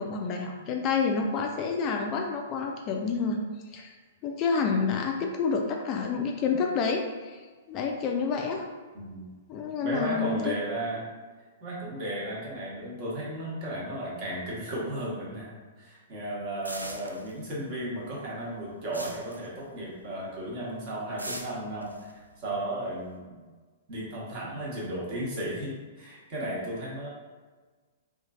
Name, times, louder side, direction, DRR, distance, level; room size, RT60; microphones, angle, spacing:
voice 1, 0.0-3.4 3.7-3.9 4.2-7.4 7.7-8.7 9.5-10.5, left 5 dB, 30° left, 2 dB, 0.3 m, -28 dB
voice 2, 8.9-9.3 9.8-11.0 11.6-15.5 15.8-23.4 23.9-27.1, right 1 dB, 40° right, -5 dB, 1.1 m, -34 dB
sound 1, 16.6-17.8 18.1-20.1 20.4-20.7 21.2-23.1, right 1 dB, 90° right, 0.3 m, -41 dB
3.0 x 2.4 x 2.3 m, 1.4 s
figure-of-eight pair, 110°, 0 cm